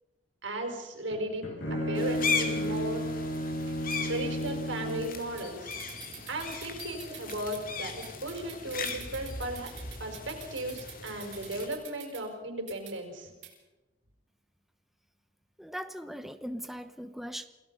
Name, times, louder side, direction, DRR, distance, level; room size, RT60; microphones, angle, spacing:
voice 1, 0.4-3.1 4.1-5.8 6.3-9.7 10.0-13.3, right 1 dB, 85° right, 3 dB, 5.2 m, -36 dB
Bowed string instrument, 1.1-5.3, equal, 70° left, 7.9 m, -33 dB
sound 1, 2.0-11.7, left 5 dB, 50° left, 2.5 m, -37 dB
sound 2, 3.7-4.0 5.4-5.5 5.7-7.6 8.0-12.2 12.7-12.9 13.4-13.5, right 11 dB, 65° right, 6.9 m, -47 dB
voice 2, 15.6-17.5, equal, ahead, 9 dB, 0.9 m, -39 dB
28.5 x 17.5 x 5.5 m, 1.1 s
head